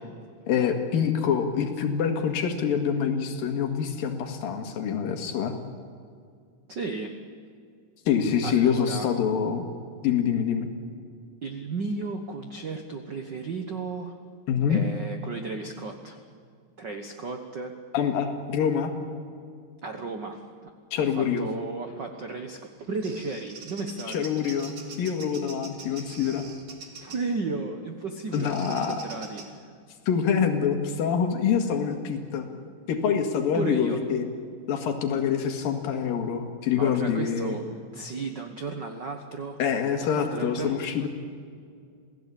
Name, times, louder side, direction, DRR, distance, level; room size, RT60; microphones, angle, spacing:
voice 1, 0.5-5.5 8.1-9.7 10.0-10.7 14.5-14.8 17.9-18.9 20.9-21.4 24.1-26.4 28.3-29.0 30.1-32.5 32.9-34.3 34.7-37.6 39.6-41.1, left 7 dB, 80° left, 5 dB, 3.7 m, -26 dB
voice 2, 6.7-7.1 8.4-9.1 11.4-14.2 14.7-16.2 16.8-17.7 19.8-20.4 21.1-24.3 27.0-29.7 33.5-34.0 36.7-39.6 40.0-41.1, right 3 dB, 70° right, 5 dB, 1.0 m, -34 dB
Bird vocalization bird call bird song, 22.6-27.3 28.3-29.5, right 4 dB, 40° right, 2.5 m, -44 dB
28.0 x 17.0 x 8.5 m, 2.2 s
omnidirectional pair, 4.1 m